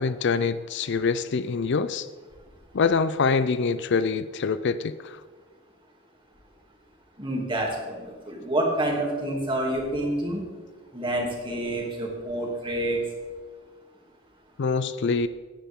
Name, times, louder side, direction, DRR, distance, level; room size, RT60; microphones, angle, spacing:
voice 1, 0.0-2.1 2.7-5.2 14.6-15.3, left 5 dB, 55° left, 13 dB, 0.4 m, -25 dB
voice 2, 7.2-10.4 10.9-13.0, right 1 dB, 25° right, -1 dB, 2.7 m, -28 dB
17.5 x 10.0 x 3.7 m, 1.4 s
head